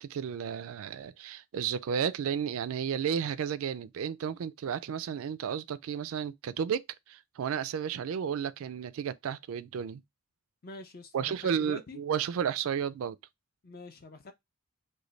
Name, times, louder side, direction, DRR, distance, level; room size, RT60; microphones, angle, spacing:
voice 1, 0.0-10.0 11.1-13.2, right 8 dB, 70° right, 0.3 m, -33 dB
voice 2, 10.6-12.0 13.6-14.3, left 2 dB, 40° left, 0.5 m, -45 dB
3.1 x 2.2 x 3.8 m
head